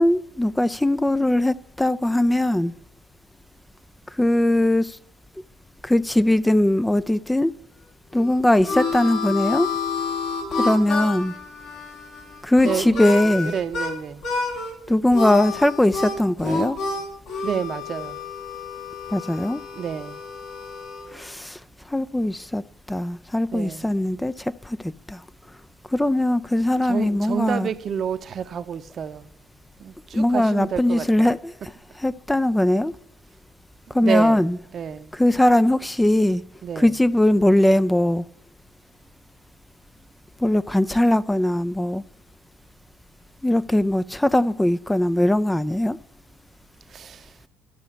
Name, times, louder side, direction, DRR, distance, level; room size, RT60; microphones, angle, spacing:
voice 1, 0.0-2.7 4.2-5.0 5.8-7.5 8.1-9.7 10.6-11.3 12.4-13.5 14.9-16.8 19.1-19.6 21.1-21.6 21.9-22.6 22.9-25.2 25.9-27.7 30.1-31.7 32.0-32.9 33.9-34.6 35.1-36.4 36.8-38.3 40.4-42.0 43.4-46.0, left 1 dB, 10° left, 0.4 m, -20 dB
Harmonica, 8.1-13.9 14.2-14.7 15.1-21.1, left 4 dB, 65° left, 2.9 m, -29 dB
voice 2, 12.6-14.2 17.4-18.2 19.7-20.2 23.5-23.9 26.8-29.3 29.8-31.3 33.9-34.5 34.7-35.1 36.6-36.9 46.9-47.3, right 7 dB, 45° right, 0.7 m, -29 dB
12.0 x 5.5 x 9.0 m
hypercardioid pair, 55°, 0 cm